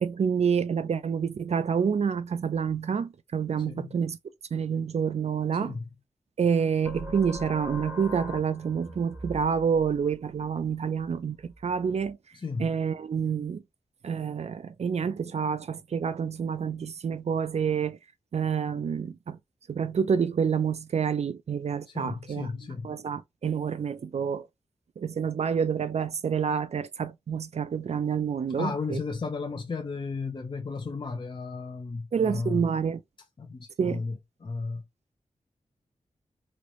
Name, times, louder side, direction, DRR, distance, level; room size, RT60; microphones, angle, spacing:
voice 1, 0.0-4.2 4.5-5.8 6.4-12.2 12.6-13.6 14.0-18.0 18.3-19.4 19.7-22.5 22.8-24.5 25.0-29.0 32.1-33.0 33.8-34.0, right 7 dB, 60° right, 0.4 m, -28 dB
voice 2, 3.7-4.0 5.5-5.9 12.3-12.8 21.9-23.0 28.6-32.7 33.4-34.8, left 4 dB, 40° left, 0.5 m, -34 dB
sound 1, 6.9-12.1, left 1 dB, 15° right, 0.6 m, -42 dB
3.1 x 2.5 x 3.0 m
wide cardioid pair, 75°, 13 cm